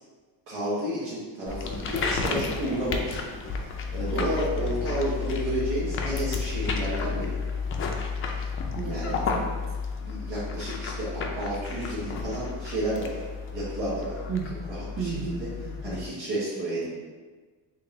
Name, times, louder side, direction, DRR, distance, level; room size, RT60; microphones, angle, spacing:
voice 1, 0.5-7.4 8.8-9.2 10.0-13.2 13.5-14.2 14.7-15.5 15.8-16.9, right 1 dB, 90° right, -11 dB, 1.3 m, -31 dB
sound 1, 1.5-16.1, left 5 dB, 30° left, 0.4 m, -32 dB
voice 2, 8.7-9.6 14.3-14.6 15.0-16.0, right 5 dB, 30° right, 1 dB, 0.6 m, -34 dB
3.8 x 2.8 x 3.7 m, 1.4 s
cardioid pair, 140°, 42 cm